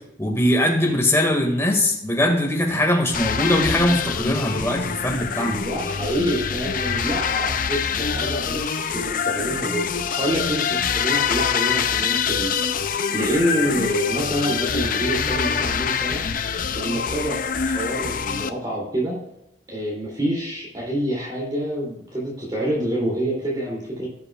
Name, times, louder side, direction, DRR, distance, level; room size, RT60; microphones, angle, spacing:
voice 1, 0.2-5.6, left 1 dB, 15° left, 0 dB, 1.9 m, -21 dB
sound 1, 3.1-18.5, left 7 dB, 45° left, 0.5 m, -25 dB
voice 2, 5.4-12.5 13.1-16.2 16.7-19.2 19.7-24.1, equal, 20° right, -5 dB, 2.8 m, -27 dB
17.0 x 6.8 x 2.4 m, 0.83 s
head